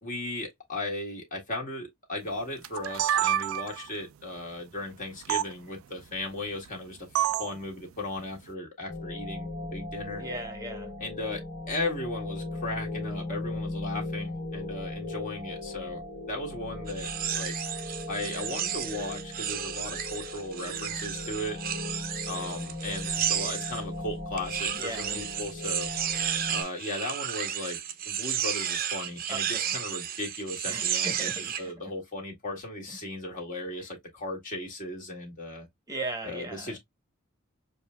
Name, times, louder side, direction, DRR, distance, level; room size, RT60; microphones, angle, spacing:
voice 1, 0.0-7.1 7.4-10.2 11.0-16.0 16.3-17.1 17.3-17.6 18.1-21.6 22.3-25.9 26.5-27.8 28.1-35.7 36.2-36.8, left 2 dB, 40° left, 1.8 m, -36 dB
sound 1, 2.6-3.9 5.3-5.5 7.1-7.6, right 11 dB, 85° right, 0.3 m, -27 dB
sound 2, 8.9-26.6, left 2 dB, 65° left, 1.6 m, -38 dB
voice 2, 10.2-10.9 24.7-25.2 29.3-29.7 30.7-31.7 35.9-36.7, right 2 dB, 20° right, 0.9 m, -37 dB
sound 3, 16.9-23.8 24.4-31.6, right 9 dB, 45° right, 0.6 m, -32 dB
7.0 x 2.6 x 2.2 m
head